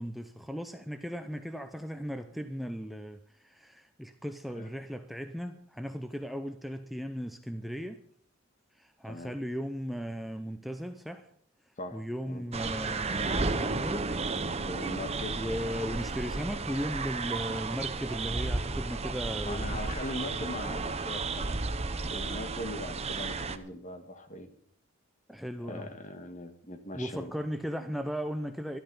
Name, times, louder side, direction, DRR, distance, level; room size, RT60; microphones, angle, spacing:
voice 1, 0.0-8.1 8.7-11.3 11.9-14.2 15.3-19.7 25.3-25.9 26.9-28.8, equal, ahead, 0.7 m, -37 dB
voice 2, 11.8-12.4 14.6-15.4 19.4-24.5 25.6-27.3, left 1 dB, 40° left, 1.8 m, -40 dB
sound 1, 12.5-23.6, right 3 dB, 30° right, 0.9 m, -33 dB
12.5 x 12.0 x 5.6 m
head